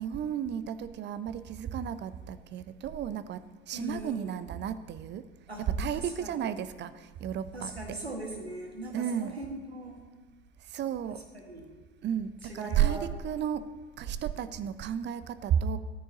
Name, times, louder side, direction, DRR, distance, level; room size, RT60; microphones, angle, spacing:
voice 1, 0.0-5.3 5.6-8.0 8.9-9.4 10.7-11.2 12.0-13.7 14.0-15.8, right 9 dB, 35° right, 14 dB, 0.7 m, -32 dB
voice 2, 3.7-4.3 5.5-6.5 7.5-10.0 11.1-11.7 12.4-13.1, right 1 dB, 90° right, 1 dB, 1.8 m, -40 dB
16.0 x 13.5 x 2.9 m, 1.3 s
figure-of-eight pair, 65°, 31 cm